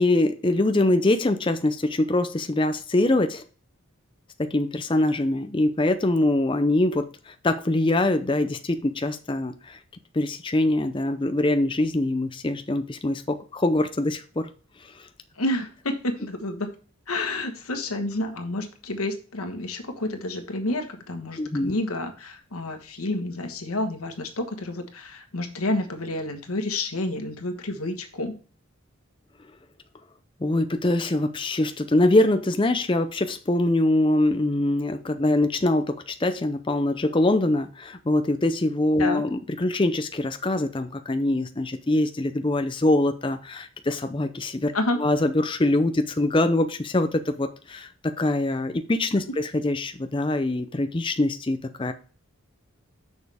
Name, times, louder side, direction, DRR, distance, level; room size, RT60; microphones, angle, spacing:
voice 1, 0.0-3.4 4.4-9.8 10.1-14.5 14.8-15.1 21.4-21.7 30.4-51.9, left 2 dB, 25° left, 8 dB, 0.5 m, -23 dB
voice 2, 15.4-16.7 17.1-28.4 39.0-39.2 44.7-45.0, left 2 dB, 90° left, 5 dB, 1.4 m, -29 dB
6.9 x 6.4 x 3.5 m, 0.38 s
head